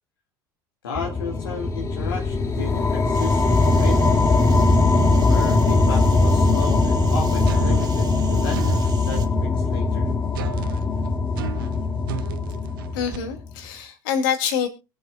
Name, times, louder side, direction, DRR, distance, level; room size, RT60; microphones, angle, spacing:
voice 1, 0.8-4.0 5.2-10.1, left 4 dB, 85° left, -1 dB, 1.9 m, -33 dB
sound 1, 0.9-13.5, left 3 dB, 25° left, 2.1 m, -20 dB
sound 2, 3.1-9.3, right 6 dB, 40° right, 2.4 m, -41 dB
sound 3, 7.5-9.0 10.3-13.2, right 12 dB, 75° right, 0.8 m, -34 dB
voice 2, 12.9-14.7, left 7 dB, 70° left, 5 dB, 2.5 m, -25 dB
23.0 x 8.2 x 2.3 m, 0.29 s
hypercardioid pair, 75°, 11 cm